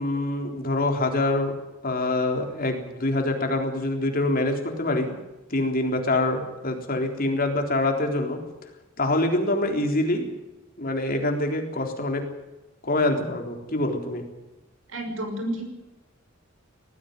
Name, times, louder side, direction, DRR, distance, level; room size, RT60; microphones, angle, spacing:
voice 1, 0.0-1.5 1.8-5.2 5.5-8.4 9.0-10.3 10.8-12.2 12.8-14.2, left 2 dB, 45° left, 3 dB, 3.8 m, -25 dB
voice 2, 14.9-15.7, right 1 dB, 80° right, 5 dB, 6.1 m, -30 dB
19.5 x 14.5 x 9.5 m, 1.0 s
head